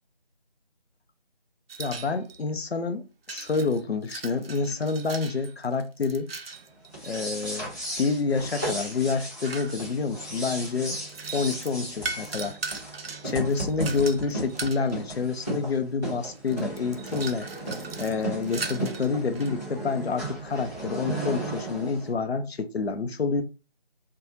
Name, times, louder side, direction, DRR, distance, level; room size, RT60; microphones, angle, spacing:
sound 1, 1.7-2.5 3.3-7.3 8.1-10.1 10.8-14.9 15.8-15.9 16.2-19.5, right 4 dB, 70° right, 0.5 m, -39 dB
voice 1, 1.8-6.3 7.0-7.7 8.0-11.0 11.3-12.6 13.2-17.5 18.0-23.4, left 4 dB, 85° left, 0.6 m, -28 dB
sound 2, 6.9-22.1, right 2 dB, 15° left, 1.0 m, -35 dB
2.5 x 2.2 x 3.0 m
figure-of-eight pair, 170°, 31 cm